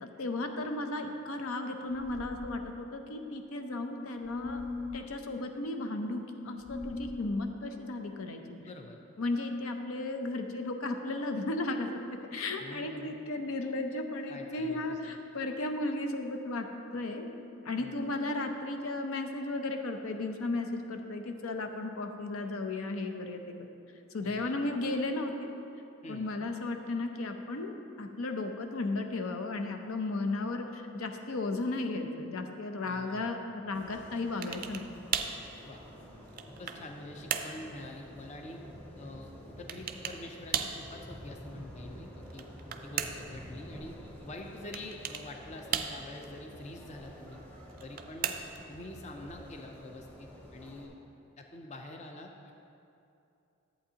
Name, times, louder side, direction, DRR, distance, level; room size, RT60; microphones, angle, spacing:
voice 1, 0.0-4.6 4.9-8.6 9.2-12.0 12.3-16.7 16.9-17.3 17.6-23.7 24.1-25.5 26.1-27.7 28.0-34.9, left 2 dB, 75° left, 5 dB, 0.6 m, -35 dB
sound 1, 1.9-2.6 4.2-5.1 6.6-7.4, left 2 dB, 60° left, 0.9 m, -40 dB
voice 2, 8.6-9.0 12.6-13.1 14.3-15.2 17.8-18.0 24.2-24.6 26.0-26.2 32.8-33.3 35.6-35.8 36.6-38.6 39.0-42.5 42.8-44.0 44.2-47.4 47.8-48.3 48.7-51.0 51.4-52.5, left 1 dB, 30° left, 2 dB, 0.5 m, -46 dB
sound 2, 33.7-50.9, equal, 10° left, 0.9 m, -49 dB
sound 3, 34.4-34.9 35.1-35.4 36.0-36.9 37.3-37.6 39.7-40.2 40.5-40.8 42.2-43.3 44.7-45.3 45.7-46.3 47.7-48.7, right 8 dB, 40° right, 0.4 m, -35 dB
11.5 x 8.0 x 2.8 m, 2.7 s
head